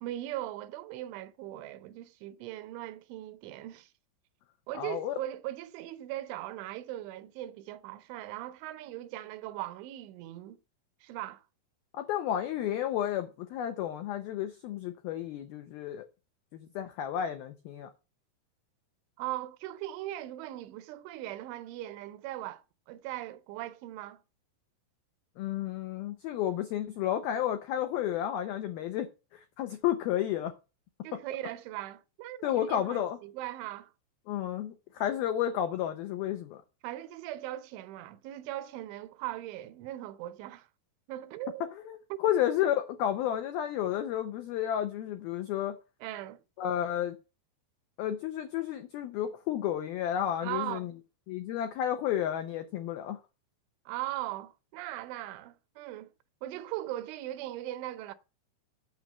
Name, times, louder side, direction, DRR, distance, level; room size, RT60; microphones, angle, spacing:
voice 1, 0.0-3.9 4.7-10.6 11.0-11.4 19.2-24.2 31.0-33.9 36.8-40.7 41.1-41.6 42.1-42.2 46.0-46.4 50.4-50.9 53.9-56.1 56.4-58.1, right 14 dB, 80° right, 3.0 m, -39 dB
voice 2, 4.8-5.2 11.9-16.1 16.5-17.9 25.4-30.5 31.1-31.2 32.4-33.2 34.3-36.6 41.8-45.8 46.6-47.2 48.0-50.9 51.3-53.2, left 11 dB, 85° left, 2.1 m, -32 dB
8.9 x 6.8 x 7.3 m
omnidirectional pair, 5.6 m